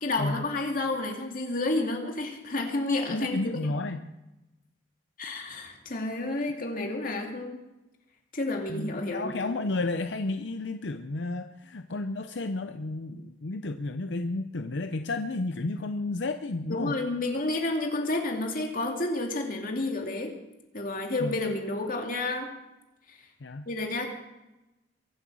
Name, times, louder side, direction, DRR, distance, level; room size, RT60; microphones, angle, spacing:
voice 1, 0.0-3.4 5.2-7.6 8.3-9.4 16.7-20.3 20.7-22.5 23.1-23.2 23.7-24.1, left 2 dB, 50° left, 2 dB, 2.5 m, -30 dB
voice 2, 3.1-4.1 8.7-17.0 21.2-21.4 23.4-23.7, left 2 dB, 80° left, 8 dB, 0.7 m, -32 dB
23.5 x 7.9 x 6.2 m, 0.99 s
head